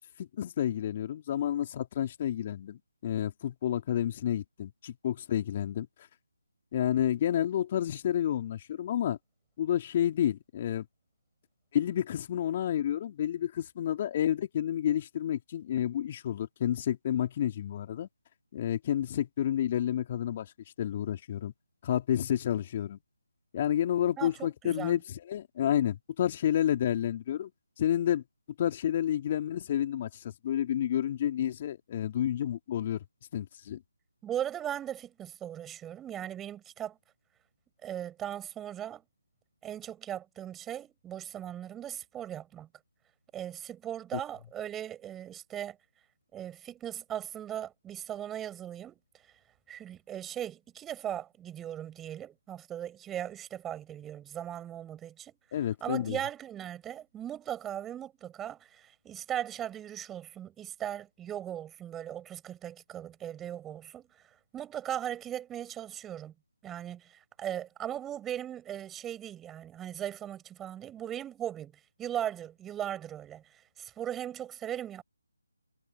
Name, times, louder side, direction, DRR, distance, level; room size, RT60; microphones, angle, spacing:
voice 1, 0.2-5.9 6.7-9.2 9.6-10.8 11.7-18.1 18.5-20.5 20.8-21.5 21.8-23.0 23.5-27.5 27.8-28.2 28.6-30.1 30.4-33.0 33.3-33.8 55.5-56.2, left 10 dB, 30° left, 3.0 m, -30 dB
voice 2, 24.2-25.0 34.2-37.0 37.8-39.0 39.6-42.7 43.3-45.8 46.3-49.0 49.7-55.3 55.8-64.0 64.5-66.3 66.6-71.7 72.0-73.4 73.8-75.0, right 10 dB, 10° right, 6.1 m, -38 dB
figure-of-eight pair, 155°, 0 cm